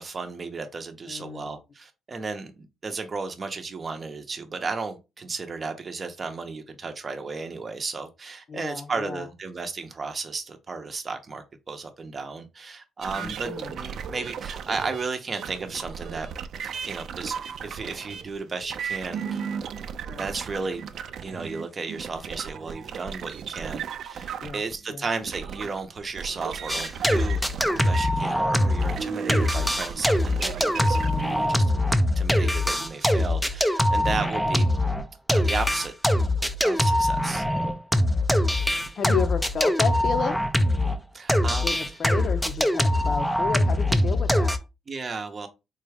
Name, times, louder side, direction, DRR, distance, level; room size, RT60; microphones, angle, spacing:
voice 1, 0.0-16.3 16.8-17.3 17.6-19.4 20.2-20.9 21.2-27.4 27.8-31.0 31.5-31.9 32.1-34.7 35.3-35.9 36.6-37.4 41.1-41.7 44.9-45.5, right 4 dB, 35° right, 0.7 m, -34 dB
voice 2, 1.1-1.5 8.5-9.3 13.1-13.8 20.1-20.3 24.4-24.6 24.9-25.1 30.9-32.0 34.0-34.5 39.0-40.4 41.4-44.5, left 6 dB, 50° left, 0.6 m, -32 dB
sound 1, 13.0-28.2 28.5-31.5, right 7 dB, 65° right, 0.3 m, -35 dB
sound 2, 26.7-29.0 29.3-41.0 41.3-44.6, left 1 dB, ahead, 0.4 m, -23 dB
3.9 x 2.3 x 3.3 m
cardioid pair, 90°, 0 cm